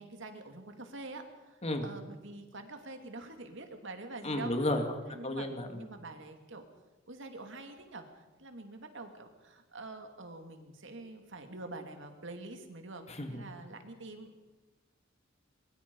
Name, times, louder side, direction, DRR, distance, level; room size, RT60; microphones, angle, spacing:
voice 1, 0.0-4.5 5.1-6.6 7.1-14.4, right 2 dB, 65° right, 6 dB, 2.6 m, -46 dB
voice 2, 4.2-4.8 5.2-5.8 13.2-13.4, left 1 dB, 35° left, 6 dB, 2.3 m, -32 dB
23.0 x 22.5 x 5.5 m, 1.2 s
head